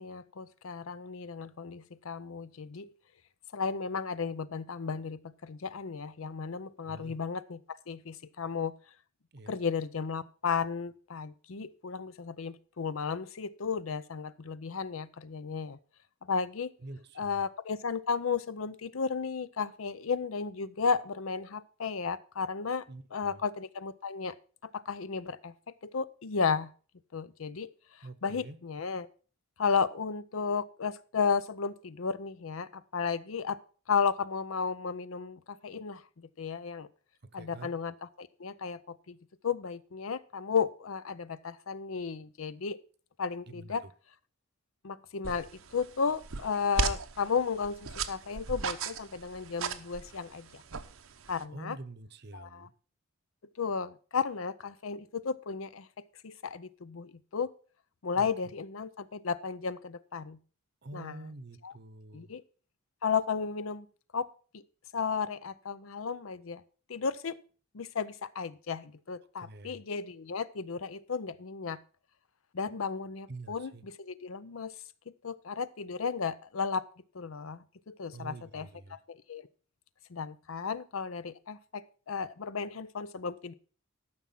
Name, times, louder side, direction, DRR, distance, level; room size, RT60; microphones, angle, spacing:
voice 1, 0.0-2.9 3.5-8.7 9.5-15.8 16.2-16.7 17.2-22.9 23.1-24.3 24.6-25.5 25.8-26.7 27.1-29.1 29.6-33.6 33.9-36.9 37.3-39.2 39.4-42.8 43.2-43.8 44.8-50.6 51.3-51.8 52.3-52.7 53.6-57.5 58.0-60.4 60.9-61.2 61.6-61.7 62.1-62.4 63.0-63.9 64.1-64.3 64.5-64.6 64.9-66.6 66.9-67.4 67.7-71.8 72.5-74.8 75.1-76.9 77.1-79.5 80.1-83.5, left 5 dB, 85° left, 16 dB, 0.6 m, -34 dB
voice 2, 6.8-7.1 9.3-9.5 16.8-17.4 22.9-23.4 28.0-28.6 37.3-37.7 43.5-43.9 51.5-52.7 58.1-58.3 60.8-62.3 69.4-69.8 73.3-73.8 78.1-79.0, right 2 dB, 50° right, 14 dB, 0.8 m, -46 dB
sound 1, 45.2-51.4, right 5 dB, 90° right, 0.9 m, -37 dB
13.0 x 6.2 x 5.7 m, 0.40 s
head